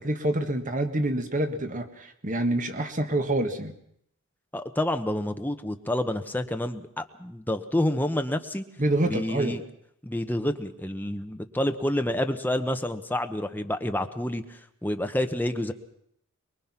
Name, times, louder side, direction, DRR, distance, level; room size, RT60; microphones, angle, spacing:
voice 1, 0.0-3.7 8.8-9.6, right 1 dB, 35° right, 7 dB, 1.5 m, -27 dB
voice 2, 4.5-8.6 9.0-9.6 10.0-15.7, left 1 dB, 10° left, 6 dB, 1.1 m, -28 dB
24.0 x 21.5 x 6.0 m, 0.73 s
head